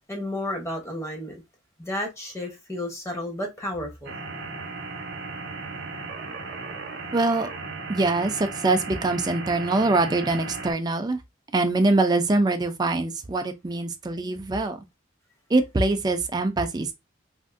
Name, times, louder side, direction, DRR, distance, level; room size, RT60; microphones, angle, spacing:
voice 1, 0.1-1.4 1.8-4.2, left 1 dB, 15° left, 0.8 m, -32 dB
sound 1, 4.0-10.7, right 3 dB, 55° right, 0.7 m, -36 dB
voice 2, 7.1-7.5 7.9-11.2 11.5-14.8 15.5-16.9, right 2 dB, 20° right, 0.4 m, -23 dB
3.5 x 2.5 x 2.4 m
head